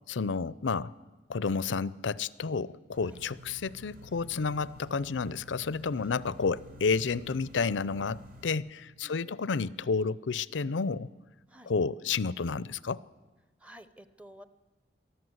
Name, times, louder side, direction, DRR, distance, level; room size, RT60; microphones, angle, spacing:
voice 1, 0.1-0.9 1.3-11.1 11.7-13.0, left 4 dB, 90° left, 20 dB, 0.5 m, -31 dB
sound 1, 2.9-8.5, left 1 dB, 50° right, 3.1 m, -50 dB
voice 2, 9.0-9.4 11.5-11.7 13.6-14.5, equal, 5° right, 12 dB, 0.7 m, -52 dB
23.0 x 14.0 x 7.9 m, 1.2 s
head